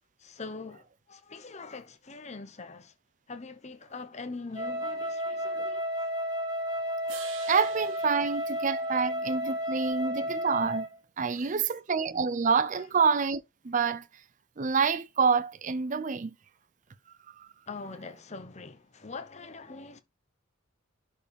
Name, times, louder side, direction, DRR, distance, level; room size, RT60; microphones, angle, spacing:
voice 1, 0.2-2.9 3.3-6.1 11.3-11.6 12.7-12.8 17.7-20.0, left 3 dB, 35° left, 0.9 m, -43 dB
Wind instrument woodwind instrument, 4.5-10.9, equal, 20° right, 2.4 m, -32 dB
sound 1, 7.1-9.4, right 8 dB, 70° right, 1.9 m, -48 dB
voice 2, 7.4-10.9 11.2-14.1 14.6-16.3 17.4-17.5, right 5 dB, 40° right, 0.5 m, -27 dB
11.0 x 4.7 x 3.4 m
head